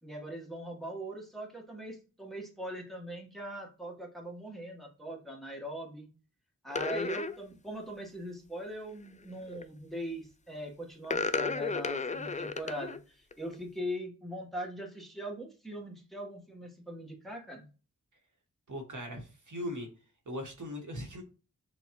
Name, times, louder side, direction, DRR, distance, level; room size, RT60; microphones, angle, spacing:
voice 1, 0.0-6.1 6.6-17.7, equal, ahead, -1 dB, 1.4 m, -41 dB
sound 1, 6.7-7.4 9.3-9.6 11.0-13.0 13.3-13.6, left 4 dB, 25° left, 0.3 m, -33 dB
voice 2, 18.7-19.9 20.3-21.2, equal, 65° right, 3 dB, 1.4 m, -39 dB
6.2 x 2.5 x 3.0 m, 0.34 s
wide cardioid pair, 65°, 32 cm